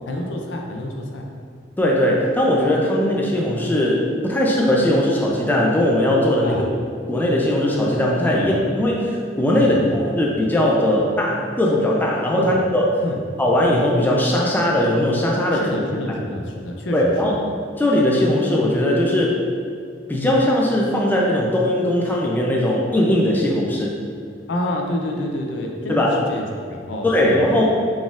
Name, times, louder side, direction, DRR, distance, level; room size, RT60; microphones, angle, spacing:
voice 1, 0.1-1.3 6.4-6.6 8.3-8.5 9.5-10.0 12.4-12.6 13.0-13.2 15.5-17.4 24.5-27.4, left 1 dB, 65° left, 1 dB, 0.5 m, -28 dB
voice 2, 1.8-6.6 7.1-12.9 13.4-15.8 16.9-17.4 17.8-19.4 20.1-23.9 25.9-26.2 27.0-27.6, left 1 dB, 10° left, -3 dB, 0.3 m, -19 dB
4.1 x 3.6 x 2.4 m, 2.3 s
head